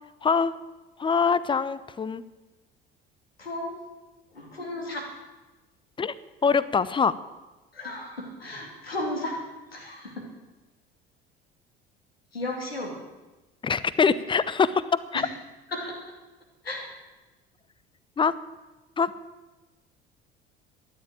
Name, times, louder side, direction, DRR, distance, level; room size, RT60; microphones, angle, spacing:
voice 1, 0.2-0.5 1.0-2.2 6.0-6.1 6.4-7.1 13.6-14.8 15.1-15.3 18.2-18.3 19.0-19.1, left 5 dB, 15° left, 17 dB, 0.7 m, -23 dB
voice 2, 3.4-3.8 4.3-5.1 7.7-9.4 9.7-10.3 12.3-12.9 15.1-15.3 15.7-16.1 16.6-16.9, left 1 dB, 80° left, 1 dB, 2.7 m, -34 dB
13.0 x 10.5 x 8.9 m, 1.1 s
figure-of-eight pair, 60°, 29 cm